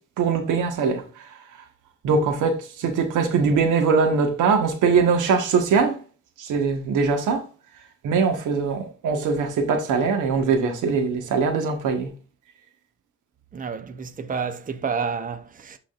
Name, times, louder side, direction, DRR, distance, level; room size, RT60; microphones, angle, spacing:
voice 1, 0.2-1.0 2.0-6.0 6.4-7.4 8.0-12.1, right 5 dB, 85° right, 1.5 m, -22 dB
voice 2, 13.5-15.8, right 5 dB, 25° right, 0.8 m, -29 dB
12.0 x 4.0 x 2.5 m
cardioid pair, 90°, 30 cm